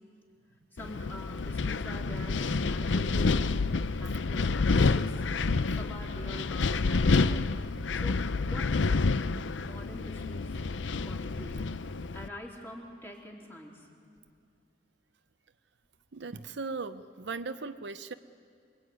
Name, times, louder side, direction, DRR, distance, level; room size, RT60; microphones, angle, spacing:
voice 1, 0.7-3.5 3.9-5.3 5.7-8.9 9.6-10.6 10.9-13.9, equal, 10° left, -1 dB, 3.6 m, -46 dB
Wind, 0.8-12.3, left 4 dB, 75° left, 0.6 m, -28 dB
voice 2, 16.1-18.1, right 4 dB, 65° right, 10 dB, 0.7 m, -38 dB
27.0 x 22.5 x 9.5 m, 2.3 s
head